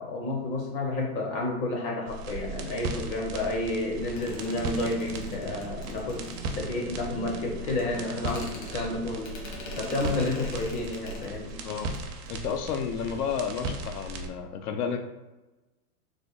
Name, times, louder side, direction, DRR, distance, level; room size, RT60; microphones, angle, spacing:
voice 1, 0.0-9.4 9.8-11.5, left 2 dB, 35° left, 0 dB, 0.6 m, -31 dB
sound 1, 2.1-14.3, right 3 dB, 45° right, 0.5 m, -37 dB
sound 2, 3.9-12.1, right 3 dB, 80° right, 0.8 m, -45 dB
sound 3, 4.2-6.9 7.8-7.9 8.2-11.6 11.9-12.0 12.3-12.5, left 2 dB, 60° left, 1.1 m, -44 dB
voice 2, 12.3-15.0, left 7 dB, 80° left, 6 dB, 0.6 m, -31 dB
3.3 x 2.0 x 3.7 m, 1.1 s
hypercardioid pair, 125°, 45 cm